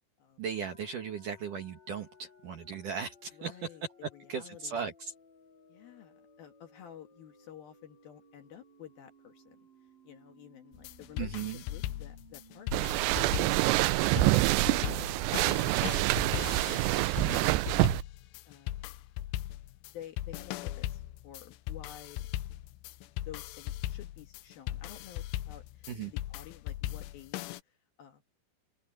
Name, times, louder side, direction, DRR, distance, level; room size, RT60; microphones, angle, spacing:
voice 1, 0.4-3.6 4.0-5.1 11.2-11.6 25.9-26.1, right 6 dB, 60° right, 2.4 m, -37 dB
sound 1, 0.5-13.0 13.4-13.5 13.8-16.5, equal, 30° left, 4.5 m, -60 dB
voice 2, 3.3-3.8 4.1-4.8 5.7-9.6 10.0-13.2 13.5-15.7 16.3-17.9 18.5-18.8 19.8-22.3 23.0-28.2, left 10 dB, 60° left, 2.8 m, -51 dB
sound 2, 10.7-27.6, left 15 dB, 85° left, 3.2 m, -38 dB
sound 3, 12.7-18.0, right 20 dB, 90° right, 2.4 m, -26 dB
open air
omnidirectional pair, 5.6 m